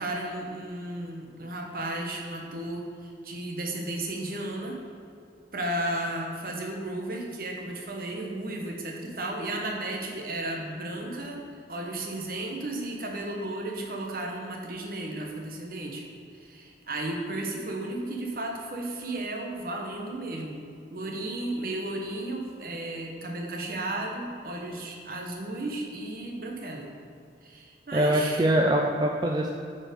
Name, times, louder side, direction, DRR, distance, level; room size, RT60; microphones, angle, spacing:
voice 1, 0.0-4.8 5.5-11.4 11.7-16.0 16.3-20.6 20.9-26.9 27.4-28.5, right 1 dB, 55° right, 1 dB, 1.1 m, -34 dB
voice 2, 27.9-29.5, right 1 dB, 25° right, 0 dB, 0.4 m, -23 dB
8.5 x 4.6 x 5.1 m, 2.4 s
head